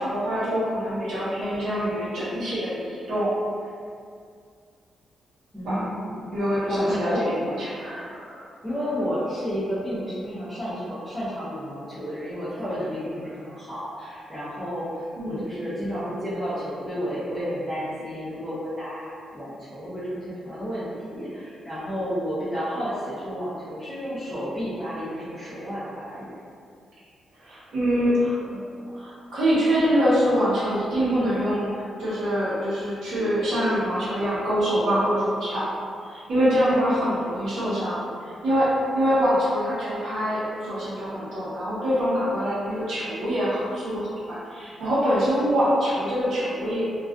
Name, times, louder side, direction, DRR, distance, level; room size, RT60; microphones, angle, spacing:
voice 1, 0.0-3.3 5.6-5.9 6.3-8.4 15.2-15.4 27.4-28.6 28.9-35.7 36.1-46.8, equal, 70° right, -11 dB, 0.8 m, -25 dB
voice 2, 5.5-7.3 8.6-26.3, equal, ahead, -15 dB, 0.6 m, -31 dB
2.3 x 2.3 x 2.2 m, 2.3 s
wide cardioid pair, 170°, 0 cm